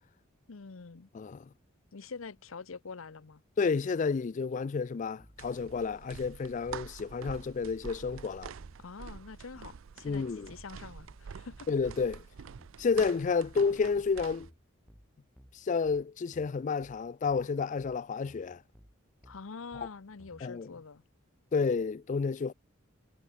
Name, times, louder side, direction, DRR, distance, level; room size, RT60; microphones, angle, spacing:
voice 1, 0.5-1.1 1.9-3.4 8.8-11.7 19.3-21.0, left 4 dB, 80° left, 0.8 m, -45 dB
voice 2, 1.1-1.5 3.6-8.5 10.0-10.5 11.7-12.2 12.8-14.5 15.5-18.6 20.4-20.7 21.5-22.5, left 5 dB, 40° left, 0.3 m, -30 dB
sound 1, 5.2-20.4, equal, ahead, 3.0 m, -58 dB
sound 2, 5.4-14.5, right 6 dB, 75° right, 0.5 m, -47 dB
head